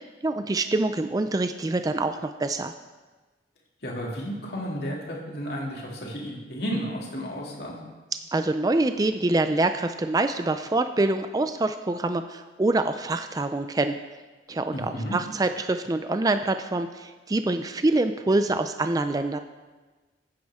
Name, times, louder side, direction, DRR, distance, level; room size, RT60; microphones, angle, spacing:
voice 1, 0.2-2.7 8.3-14.0 14.5-19.4, right 2 dB, 20° right, 9 dB, 0.4 m, -25 dB
voice 2, 3.8-7.8 14.7-15.2, equal, 65° left, -2 dB, 2.6 m, -32 dB
15.0 x 9.4 x 3.6 m, 1.3 s
head